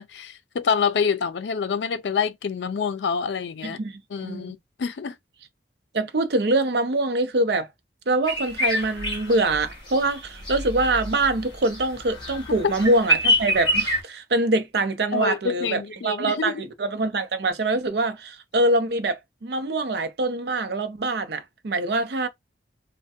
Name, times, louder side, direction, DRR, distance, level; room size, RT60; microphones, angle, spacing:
voice 1, 0.0-3.8 4.1-5.1 12.6-12.7 15.1-16.6, left 6 dB, 80° left, 0.4 m, -26 dB
voice 2, 3.6-4.5 5.9-7.7 8.1-22.3, right 2 dB, 65° right, 0.6 m, -24 dB
sound 1, 8.3-14.0, equal, 25° left, 1.2 m, -27 dB
3.2 x 2.2 x 2.7 m
head